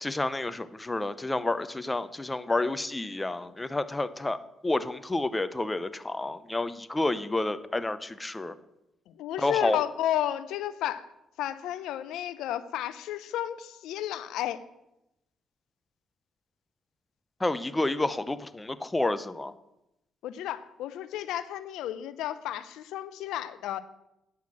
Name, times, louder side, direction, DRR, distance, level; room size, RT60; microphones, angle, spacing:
voice 1, 0.0-4.4 4.6-8.5 9.4-9.8 17.4-19.5, left 2 dB, 15° left, 12 dB, 0.6 m, -29 dB
voice 2, 9.2-11.1 11.4-14.6 20.2-23.8, left 12 dB, 90° left, 14 dB, 0.5 m, -32 dB
9.2 x 5.7 x 7.5 m, 0.88 s
cardioid pair, 90°, 0 cm